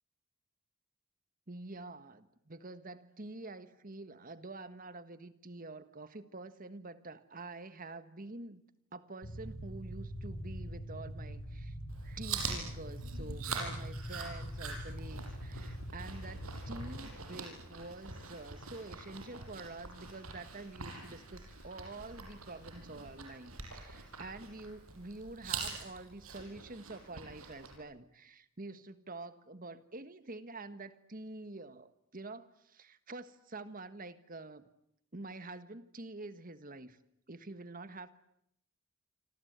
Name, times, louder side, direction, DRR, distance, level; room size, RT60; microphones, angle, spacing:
voice 1, 1.5-8.6 8.9-11.7 12.0-34.7 35.1-37.0 37.3-38.1, right 2 dB, 40° right, 11 dB, 1.6 m, -47 dB
sound 1, 9.2-17.0, equal, 85° left, 6.5 m, -43 dB
Chewing mastication, 11.9-27.8, right 4 dB, 90° right, 6.5 m, -44 dB
27.0 x 26.5 x 8.2 m, 0.75 s
head